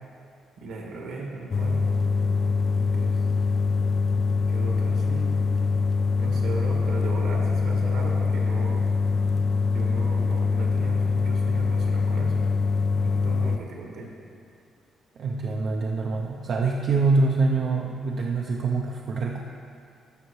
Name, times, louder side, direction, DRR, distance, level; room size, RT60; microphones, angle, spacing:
voice 1, 0.6-1.8 2.7-3.2 4.5-5.4 6.2-8.9 9.7-12.5 12.9-14.1, right 2 dB, 80° right, -1 dB, 1.6 m, -37 dB
sound 1, 1.5-13.6, left 4 dB, 45° left, 0.4 m, -24 dB
voice 2, 15.2-19.4, right 3 dB, 60° right, -1 dB, 0.6 m, -25 dB
13.5 x 5.8 x 3.2 m, 2.4 s
cardioid pair, 90°, 0 cm